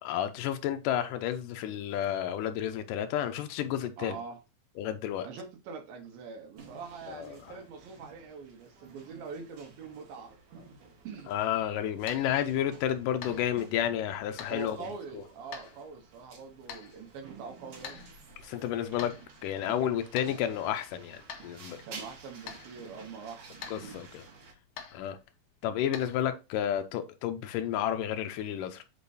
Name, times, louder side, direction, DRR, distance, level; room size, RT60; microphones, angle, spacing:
voice 1, 0.0-4.2 4.8-5.3 7.1-7.4 11.3-14.8 18.4-19.1 19.4-21.8 23.7-24.3 24.9-25.2 25.6-28.8, left 10 dB, 90° left, 1.9 m, -31 dB
voice 2, 4.0-4.4 5.2-10.7 11.0-11.3 14.5-18.1 21.8-23.5, right 5 dB, 75° right, 2.7 m, -44 dB
sound 1, 6.6-24.5, right 4 dB, 55° right, 1.7 m, -52 dB
sound 2, 12.0-26.3, left 7 dB, 70° left, 2.1 m, -49 dB
8.5 x 4.4 x 2.7 m
omnidirectional pair, 4.5 m